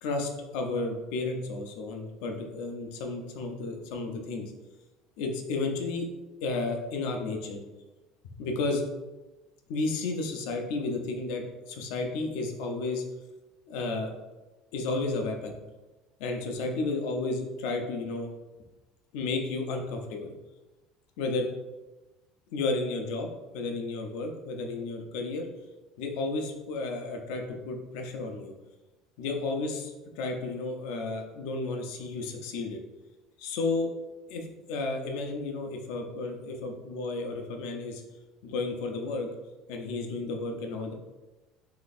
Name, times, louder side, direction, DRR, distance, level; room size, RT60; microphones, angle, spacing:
voice 1, 0.0-4.5 5.2-6.1 6.4-7.6 8.2-8.8 9.7-13.0 13.7-14.1 14.7-15.6 16.2-18.3 19.1-20.3 21.2-21.5 22.5-23.3 23.5-25.5 26.0-28.5 29.2-32.8 33.4-33.9 34.3-38.0 38.4-39.3 39.7-40.9, left 3 dB, 70° left, 3 dB, 0.6 m, -32 dB
3.3 x 2.9 x 4.1 m, 1.1 s
cardioid pair, 180°, 0 cm